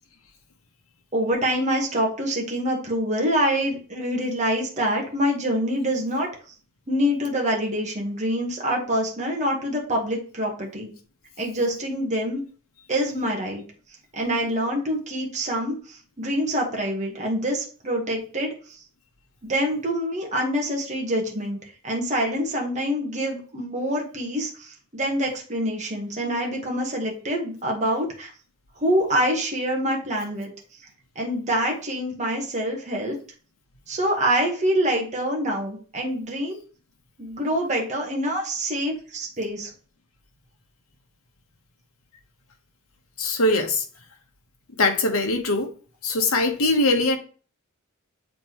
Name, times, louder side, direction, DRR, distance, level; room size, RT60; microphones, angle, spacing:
voice 1, 1.1-6.3 6.9-10.9 11.4-12.4 12.9-13.6 14.1-18.8 19.4-21.6 21.8-28.3 28.8-30.5 31.1-33.2 33.9-36.6 37.2-39.7, equal, 35° right, 1.2 m, -25 dB
voice 2, 43.2-43.8 44.8-45.7 46.0-47.2, left 2 dB, 75° left, 1.1 m, -21 dB
7.5 x 4.4 x 3.0 m
head